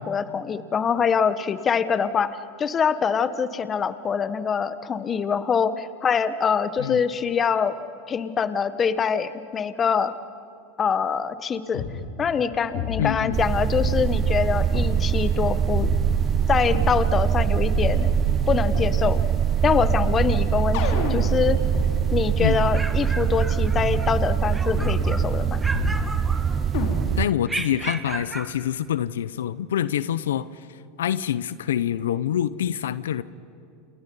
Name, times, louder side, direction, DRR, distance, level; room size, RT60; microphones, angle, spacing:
voice 1, 0.0-2.3 2.6-7.7 8.1-10.1 10.8-11.8 12.2-15.9 16.5-18.1 18.5-19.2 19.6-21.6 22.1-25.6, left 6 dB, 25° left, 13 dB, 1.1 m, -24 dB
sound 1, 11.7-11.9 12.7-13.4 13.7-14.9 15.7-17.0 17.7-19.0 19.7-21.9 22.7-22.8 23.7-24.0 24.7-25.4 25.7-26.4 26.7-27.4, left 5 dB, 65° left, 4.0 m, -31 dB
voice 2, 13.0-13.4 22.4-22.7 27.2-33.2, left 10 dB, 90° left, 16 dB, 0.7 m, -26 dB
sound 2, 13.3-27.3, right 8 dB, 30° right, 0.5 m, -23 dB
sound 3, 22.7-24.1 24.5-25.3 25.6-26.9 27.4-28.5, right 2 dB, 10° right, 1.9 m, -34 dB
29.0 x 28.5 x 5.5 m, 2.5 s
supercardioid pair, 115°, 0 cm